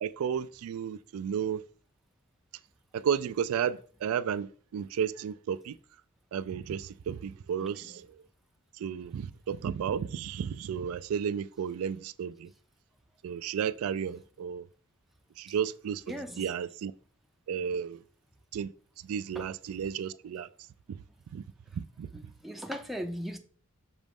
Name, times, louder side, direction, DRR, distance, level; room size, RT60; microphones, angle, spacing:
voice 1, 0.0-1.6 2.9-5.8 6.3-8.1 8.8-12.5 13.2-14.6 15.4-16.9 17.5-18.0 18.5-18.7 19.1-20.5 20.9-21.0 21.3-21.4 21.7-22.1, right 8 dB, 75° right, 0.3 m, -33 dB
voice 2, 16.1-16.5 19.3-19.5 22.1-23.4, equal, ahead, 0.5 m, -38 dB
6.2 x 3.1 x 5.2 m
head